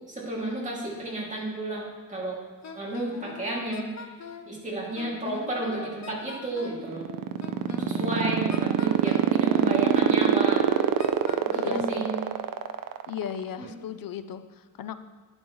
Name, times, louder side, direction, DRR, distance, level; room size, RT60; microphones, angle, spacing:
voice 1, 0.1-2.4 2.7-4.1 4.5-7.1 7.8-10.7 11.5-12.2 13.6-13.7, right 2 dB, 20° right, -5 dB, 2.6 m, -32 dB
Wind instrument woodwind instrument, 2.6-4.5 5.0-6.9 7.4-9.4 9.9-11.8, left 5 dB, 55° left, 0.9 m, -41 dB
sound 1, 6.7-13.4, right 10 dB, 85° right, 0.6 m, -22 dB
voice 2, 11.5-12.1 13.1-15.0, left 9 dB, 85° left, 11 dB, 0.6 m, -36 dB
11.5 x 9.6 x 3.1 m, 1.4 s
wide cardioid pair, 165°, 33 cm